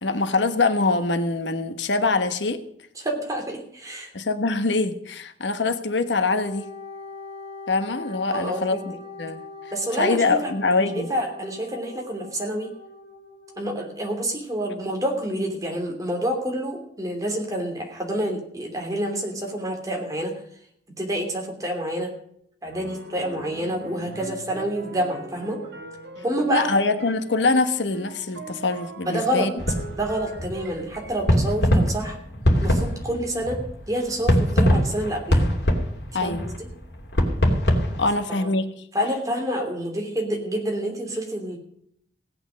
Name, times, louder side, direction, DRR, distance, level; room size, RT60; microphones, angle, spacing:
voice 1, 0.0-2.6 4.1-6.7 7.7-8.8 9.2-9.4 10.0-11.1 26.5-29.5 36.1-36.5 38.0-38.7, left 3 dB, 90° left, 9 dB, 1.2 m, -23 dB
voice 2, 3.0-4.1 8.3-8.8 9.7-10.5 10.8-12.7 13.6-20.3 21.0-22.1 22.6-25.6 26.2-26.7 29.0-29.5 29.9-32.2 32.6-33.6 33.9-35.5 36.2-36.5 38.3-38.5 38.9-41.6, right 1 dB, 20° right, 1 dB, 3.0 m, -28 dB
Wind instrument woodwind instrument, 6.2-13.9, left 3 dB, 35° left, 5.6 m, -41 dB
sound 1, 22.6-31.2, right 2 dB, 70° right, 3.6 m, -40 dB
sound 2, 29.6-38.0, equal, 70° left, 2.8 m, -23 dB
17.0 x 9.0 x 6.3 m, 0.68 s
head